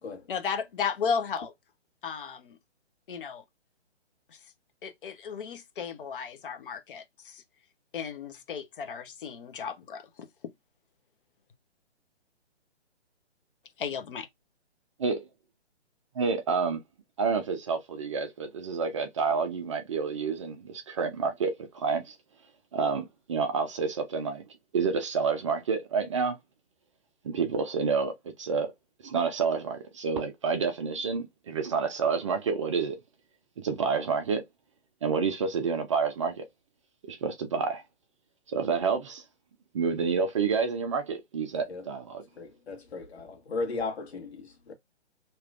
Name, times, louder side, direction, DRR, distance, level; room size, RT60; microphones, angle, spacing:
voice 1, 0.3-1.5 2.0-2.6 3.1-3.4 4.3-4.5 4.8-7.4 7.9-10.3 13.8-14.3, left 6 dB, 50° left, 0.9 m, -34 dB
voice 2, 16.2-16.8 17.2-22.2 22.7-24.4 24.7-26.4 27.2-28.1 28.4-28.7 29.0-33.0 33.6-34.4 35.0-36.4 37.1-37.8 38.5-39.2 39.7-42.2, right 5 dB, 30° right, 0.5 m, -29 dB
voice 3, 42.4-44.7, left 3 dB, 70° left, 1.5 m, -36 dB
3.3 x 2.9 x 2.4 m
hypercardioid pair, 140°, 34 cm